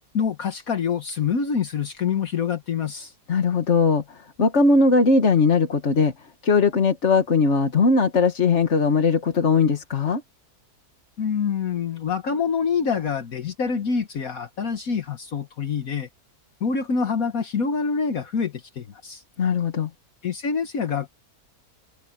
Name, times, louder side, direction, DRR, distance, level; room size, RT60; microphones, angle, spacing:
voice 1, 0.1-3.1 11.2-16.1 16.6-19.2 20.2-21.1, left 6 dB, 65° left, 1.8 m, -26 dB
voice 2, 3.3-4.0 4.4-6.1 6.4-10.2 19.4-19.9, left 4 dB, 50° left, 1.8 m, -19 dB
omnidirectional pair, 1.6 m